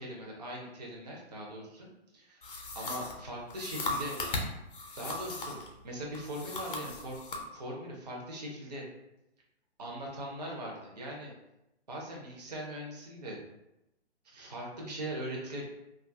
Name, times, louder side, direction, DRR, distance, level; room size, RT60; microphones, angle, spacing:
voice 1, 0.0-1.9 2.1-2.5 2.7-4.2 5.0-5.6 5.8-8.9 9.8-11.3 11.9-13.4 14.2-15.6, right 1 dB, 40° right, -2 dB, 0.4 m, -40 dB
sound 1, 2.4-5.7 6.1-7.4, left 3 dB, 50° left, 0.5 m, -37 dB
2.5 x 2.3 x 2.5 m, 0.88 s
hypercardioid pair, 180°, 33 cm